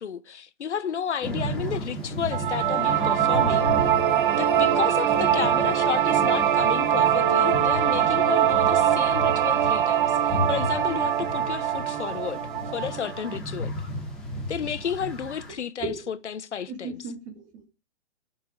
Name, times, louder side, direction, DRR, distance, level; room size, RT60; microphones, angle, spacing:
voice 1, 0.0-3.9 4.3-12.4 12.7-13.7 14.5-17.0, left 8 dB, 85° left, 1.1 m, -32 dB
sound 1, 1.2-15.5, equal, ahead, 2.7 m, -34 dB
sound 2, 2.3-13.4, right 10 dB, 50° right, 1.1 m, -23 dB
voice 2, 15.8-16.1 16.7-17.7, right 4 dB, 20° right, 2.0 m, -36 dB
12.5 x 6.1 x 4.9 m
hypercardioid pair, 155°, 34 cm